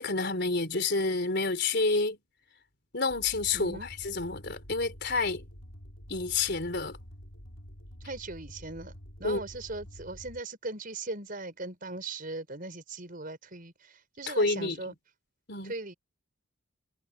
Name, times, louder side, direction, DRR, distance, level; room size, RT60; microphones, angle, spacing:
voice 1, 0.0-2.2 2.9-5.4 6.1-7.0 9.2-9.4 14.3-14.9 15.5-15.7, left 3 dB, 55° left, 4.1 m, -29 dB
sound 1, 3.1-10.4, equal, 90° left, 6.3 m, -48 dB
voice 2, 3.5-3.9 8.0-14.9 15.6-15.9, right 2 dB, 40° right, 5.6 m, -39 dB
head